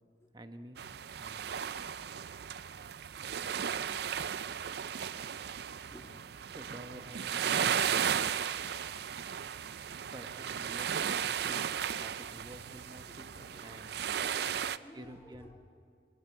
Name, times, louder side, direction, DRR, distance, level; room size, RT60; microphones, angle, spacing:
voice 1, 0.3-0.8 1.2-1.6 6.5-8.0 10.1-11.7 12.0-13.3 13.6-14.0 14.9-15.6, right 1 dB, 25° right, 7 dB, 1.1 m, -50 dB
sound 1, 0.8-14.8, right 8 dB, 65° right, 0.5 m, -35 dB
voice 2, 13.0-13.9 14.2-15.6, equal, 15° left, 0 dB, 2.7 m, -55 dB
24.0 x 18.0 x 8.1 m, 2.2 s
head